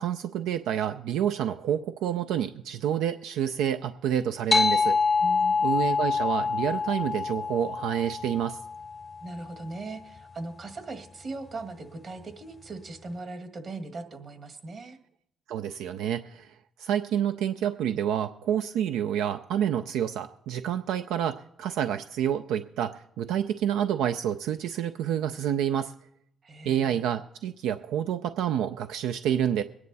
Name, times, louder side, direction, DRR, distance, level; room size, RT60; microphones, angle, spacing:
voice 1, 0.0-5.0 5.6-8.6 15.5-25.9 26.6-29.6, right 9 dB, 90° right, 10 dB, 0.4 m, -28 dB
sound 1, 4.5-9.5, left 4 dB, 25° left, 0.6 m, -26 dB
voice 2, 5.2-5.6 9.2-15.0 26.4-27.0, right 2 dB, 45° right, 8 dB, 1.7 m, -39 dB
21.5 x 9.6 x 4.1 m, 0.74 s
cardioid pair, 90°, 0 cm